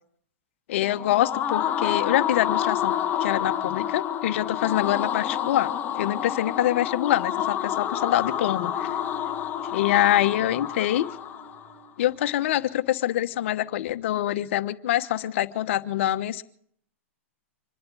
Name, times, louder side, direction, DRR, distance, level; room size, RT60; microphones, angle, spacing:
voice 1, 0.7-2.9 3.2-8.9 9.7-11.0 12.0-16.4, left 13 dB, 60° left, 12 dB, 1.1 m, -25 dB
sound 1, 0.8-11.7, left 10 dB, 25° left, 1.3 m, -29 dB
sound 2, 7.2-14.6, right 4 dB, 80° right, 7.8 m, -51 dB
26.0 x 11.0 x 4.8 m, 0.62 s
hypercardioid pair, 125°, 7 cm